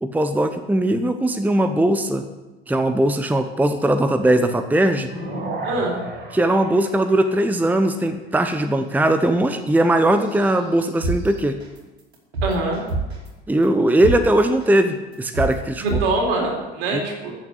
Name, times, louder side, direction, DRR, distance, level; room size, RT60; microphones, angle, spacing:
voice 1, 0.0-2.2 2.7-5.1 6.3-11.6 13.5-16.0 16.9-17.0, right 1 dB, 5° right, 9 dB, 0.9 m, -19 dB
sound 1, 5.1-7.8 10.2-11.4, right 2 dB, 35° right, 4.2 m, -34 dB
voice 2, 5.6-6.0 12.4-12.8 15.8-17.4, right 2 dB, 60° right, 1 dB, 3.8 m, -23 dB
sound 2, 11.0-11.2 11.6-11.8 12.1-13.3 13.6-13.7 14.0-14.2 14.6-14.8 15.1-15.5 15.9-16.0, right 3 dB, 80° right, 3.0 m, -24 dB
14.5 x 7.2 x 8.3 m, 1.2 s
figure-of-eight pair, 70°, 31 cm